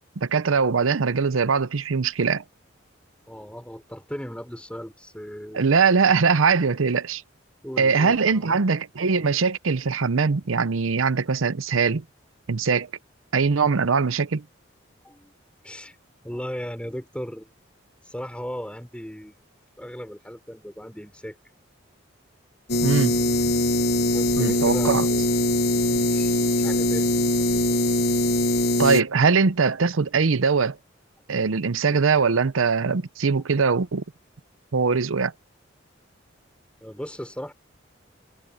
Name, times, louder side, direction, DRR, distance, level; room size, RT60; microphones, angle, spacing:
voice 1, 0.2-2.4 5.5-7.2 7.8-12.0 12.5-12.9 13.3-14.4 22.8-23.2 24.4-25.0 28.8-30.8 31.3-34.0 34.7-35.3, right 5 dB, 85° right, 0.7 m, -21 dB
voice 2, 3.3-5.6 7.6-8.5 15.0-15.3 15.6-16.0 16.2-17.5 18.0-19.4 19.8-21.4 24.0-25.3 25.9-27.7 36.8-37.5, equal, 5° left, 4.0 m, -37 dB
sound 1, 22.7-29.0, left 1 dB, 50° left, 1.3 m, -22 dB
head